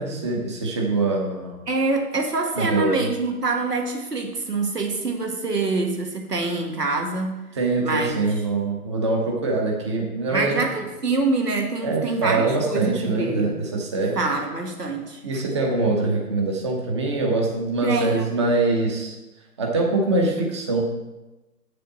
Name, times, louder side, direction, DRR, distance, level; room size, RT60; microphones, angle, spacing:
voice 1, 0.0-1.7 2.6-2.9 7.6-10.6 11.8-14.2 15.2-19.1 19.6-20.9, right 3 dB, 20° right, 1 dB, 0.9 m, -23 dB
voice 2, 1.7-7.4 7.8-8.3 10.3-13.6 14.1-15.4 17.8-18.3, right 3 dB, 80° right, 3 dB, 1.7 m, -25 dB
8.2 x 6.7 x 4.1 m, 1.0 s
figure-of-eight pair, 140°, 47 cm